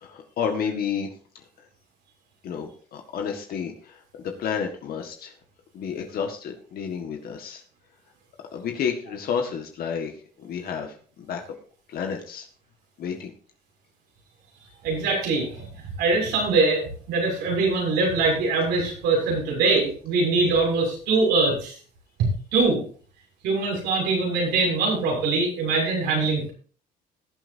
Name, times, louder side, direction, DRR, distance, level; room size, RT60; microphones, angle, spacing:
voice 1, 0.0-1.1 2.4-5.3 5.7-7.6 8.5-10.1 10.4-11.4 11.9-12.5 13.0-13.3, left 7 dB, 65° left, 3 dB, 1.8 m, -30 dB
voice 2, 14.8-15.7 16.0-16.8 17.1-21.7 22.2-22.8 23.4-26.5, right 3 dB, 85° right, -1 dB, 6.9 m, -23 dB
20.0 x 8.0 x 2.8 m, 0.43 s
cardioid pair, 110°, 17 cm